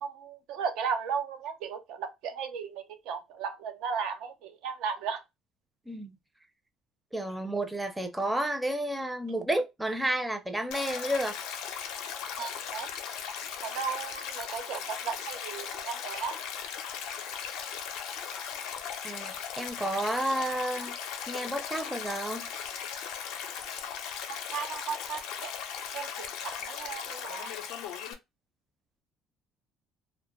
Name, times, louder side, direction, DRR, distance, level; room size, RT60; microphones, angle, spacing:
voice 1, 0.0-5.2 12.4-12.9 13.6-16.3 24.5-25.5 25.9-27.5, right 6 dB, 80° right, 0.4 m, -35 dB
voice 2, 7.1-11.4 19.0-21.0 21.3-22.4, right 1 dB, 10° right, 0.5 m, -31 dB
Stream, 10.7-28.1, left 8 dB, 85° left, 0.4 m, -38 dB
2.1 x 2.0 x 2.9 m
cardioid pair, 100°, 0 cm